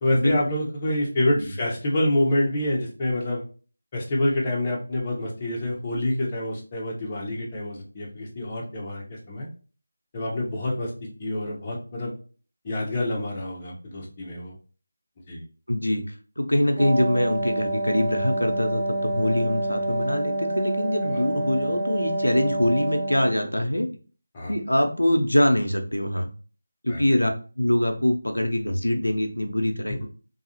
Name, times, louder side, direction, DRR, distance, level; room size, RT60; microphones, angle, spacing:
voice 1, 0.0-3.4 3.9-9.5 10.1-10.9 11.2-12.1 12.6-14.5 15.3-15.4 21.1-21.3 24.3-24.6 26.9-27.0, left 1 dB, 25° left, -4 dB, 0.8 m, -27 dB
voice 2, 15.7-23.9 24.5-26.3 26.8-27.3 27.6-30.1, left 1 dB, 85° left, 4 dB, 0.5 m, -24 dB
Wind instrument woodwind instrument, 16.8-23.5, right 1 dB, 25° right, 0.8 m, -28 dB
2.7 x 2.3 x 2.8 m, 0.37 s
figure-of-eight pair, 165°, 0 cm